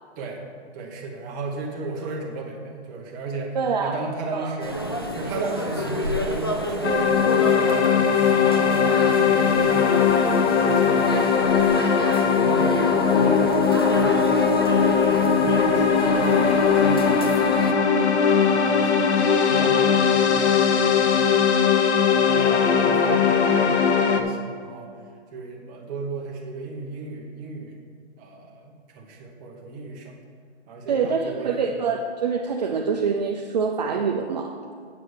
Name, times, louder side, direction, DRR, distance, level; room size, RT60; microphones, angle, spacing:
voice 1, 0.7-4.8 5.1-11.7 12.2-14.8 15.1-17.7 18.1-21.5 21.9-24.9 25.3-27.8 28.2-30.2 30.7-31.7, right 3 dB, 15° right, -2 dB, 1.1 m, -34 dB
voice 2, 3.5-3.9 4.3-4.5 30.9-34.5, right 5 dB, 40° right, 2 dB, 0.6 m, -25 dB
sound 1, 4.6-17.7, equal, 25° left, 0.3 m, -31 dB
sound 2, 6.8-24.2, left 6 dB, 75° left, 1.1 m, -19 dB
8.5 x 6.8 x 6.3 m, 2.2 s
hypercardioid pair, 165°, 34 cm